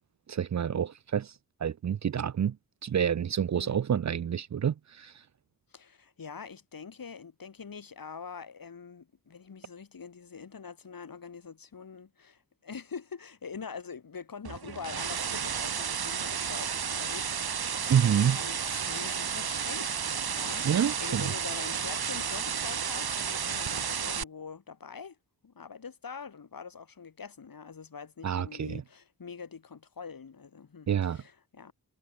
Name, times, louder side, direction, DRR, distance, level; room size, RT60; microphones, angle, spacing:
voice 1, 0.3-1.3 1.6-2.6 2.8-5.1 17.9-18.4 20.6-21.3 28.2-28.8 30.9-31.2, right 8 dB, 50° right, 0.6 m, -28 dB
voice 2, 5.7-25.2 25.4-31.7, left 6 dB, 65° left, 7.3 m, -44 dB
sound 1, 14.4-24.2, right 7 dB, 80° right, 3.6 m, -32 dB
wide cardioid pair, 105°, 37 cm